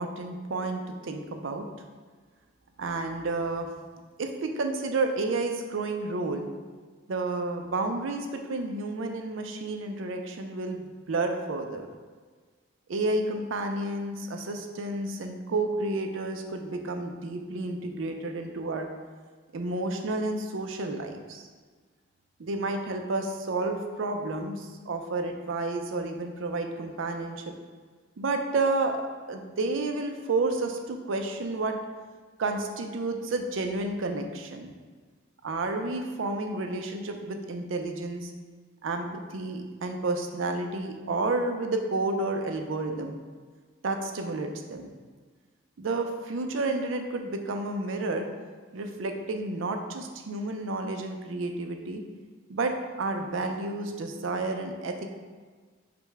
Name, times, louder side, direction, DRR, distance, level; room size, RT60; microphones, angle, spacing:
voice 1, 0.0-1.6 2.8-3.7 4.2-6.5 7.1-11.9 12.9-18.9 19.5-21.5 22.4-27.4 28.2-29.0 29.3-31.8 32.4-34.7 35.4-38.3 38.8-43.2 43.8-44.9 45.8-48.3 48.7-52.0 52.5-55.1, right 2 dB, 80° right, 5 dB, 0.5 m, -31 dB
5.1 x 2.2 x 4.6 m, 1.5 s
head